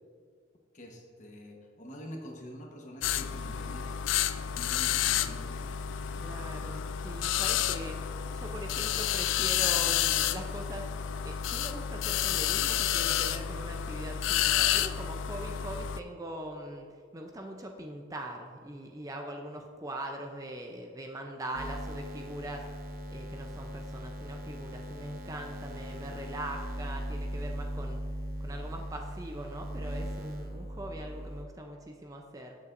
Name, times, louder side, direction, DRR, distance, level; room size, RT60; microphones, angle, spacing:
voice 1, 0.7-3.9 4.3-5.7 7.7-7.9, equal, 40° left, 1 dB, 1.1 m, -46 dB
sound 1, 3.0-16.0, left 10 dB, 85° left, 0.3 m, -30 dB
voice 2, 6.2-8.0 8.3-16.9 17.1-22.7 23.1-28.0 28.4-32.6, right 1 dB, 20° right, 2 dB, 0.5 m, -42 dB
sound 2, 21.5-31.4, equal, 50° right, 0.7 m, -39 dB
13.5 x 6.9 x 2.6 m, 2.1 s
head